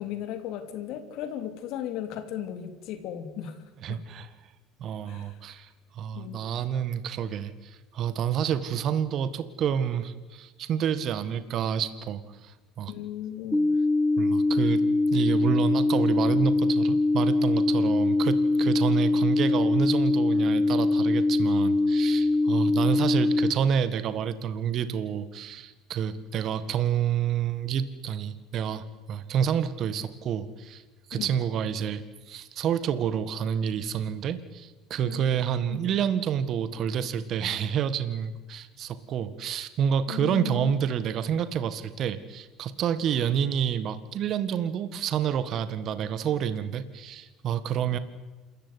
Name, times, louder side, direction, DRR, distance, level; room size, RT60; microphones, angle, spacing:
voice 1, 0.0-3.5 3.9-4.0 5.1-5.4 6.1-6.4 12.9-13.7 31.1-31.3 35.0-35.9 40.1-40.9, left 11 dB, 70° left, 8 dB, 3.2 m, -36 dB
voice 2, 3.8-4.3 4.8-12.9 14.2-14.8 15.1-30.8 31.1-48.0, right 8 dB, 55° right, 13 dB, 1.7 m, -29 dB
sound 1, 13.5-23.5, left 2 dB, 5° left, 1.1 m, -23 dB
27.5 x 14.5 x 9.6 m, 1.2 s
supercardioid pair, 85°, 0 cm